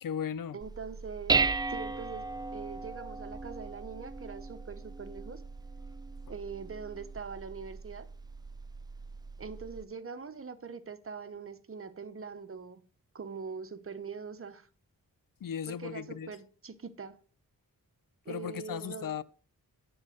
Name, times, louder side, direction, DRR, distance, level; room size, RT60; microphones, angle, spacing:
voice 1, 0.0-0.6 15.4-16.3 18.3-19.2, left 8 dB, 70° left, 0.5 m, -36 dB
voice 2, 0.5-1.4 1.7-2.2 2.5-5.4 6.3-8.1 9.4-12.8 13.1-14.7 15.7-17.2 18.2-19.1, right 5 dB, 40° right, 0.9 m, -43 dB
Dishes pots and pans, 0.6-9.8, right 4 dB, 15° right, 0.3 m, -36 dB
9.5 x 3.9 x 6.4 m
cardioid pair, 70°, 35 cm